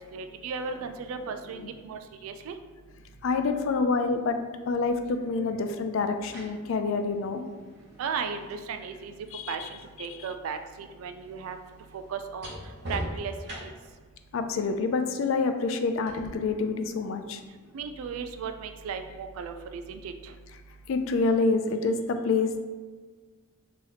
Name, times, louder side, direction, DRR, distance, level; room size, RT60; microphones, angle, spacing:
voice 1, 0.0-2.6 8.0-9.1 9.5-11.6 11.9-12.5 12.9-13.3 13.6-13.7 17.7-20.3, right 5 dB, 85° right, 8 dB, 0.3 m, -36 dB
voice 2, 3.2-4.4 4.7-7.4 9.3-9.7 10.1-10.2 14.3-17.4 20.9-22.6, left 4 dB, 65° left, 7 dB, 0.3 m, -27 dB
sound 1, 4.8-4.9 6.0-10.0 10.3-14.0 16.1-16.3, equal, 55° right, 0.8 m, -42 dB
2.9 x 2.9 x 3.9 m, 1.4 s
head